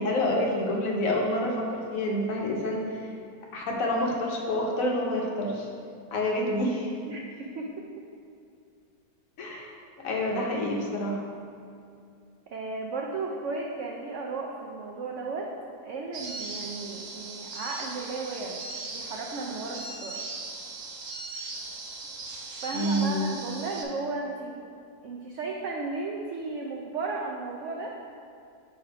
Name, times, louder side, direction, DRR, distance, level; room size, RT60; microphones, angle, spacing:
voice 1, 0.0-3.1 3.5-5.7 6.1-6.9 9.4-9.7 10.0-11.2 22.7-23.3, left 1 dB, 60° left, -1 dB, 1.1 m, -28 dB
voice 2, 7.1-7.7 12.5-15.5 15.8-18.6 18.9-20.2 22.6-24.6 25.0-27.9, right 3 dB, 90° right, -1 dB, 0.6 m, -34 dB
sound 1, 16.1-23.8, right 3 dB, 60° right, 1.0 m, -39 dB
6.4 x 3.4 x 4.6 m, 2.4 s
omnidirectional pair, 1.8 m